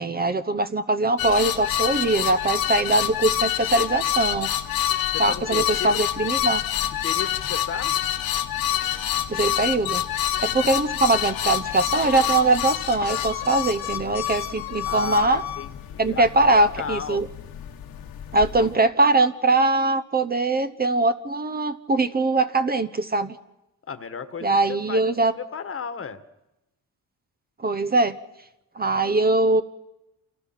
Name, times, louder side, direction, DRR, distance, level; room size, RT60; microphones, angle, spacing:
voice 1, 0.0-4.5 5.2-6.6 9.3-10.0 10.4-15.4 16.0-17.3 18.3-23.3 24.4-25.3 27.6-28.2 28.8-29.6, right 2 dB, 25° right, 10 dB, 0.9 m, -22 dB
sound 1, 1.2-18.7, left 11 dB, 75° left, 1.6 m, -27 dB
voice 2, 5.1-6.0 7.0-8.0 10.6-10.7 14.9-17.3 18.5-18.7 23.9-26.2, left 6 dB, 40° left, 10 dB, 1.5 m, -34 dB
28.5 x 28.0 x 5.9 m, 0.95 s
cardioid pair, 145°, 36 cm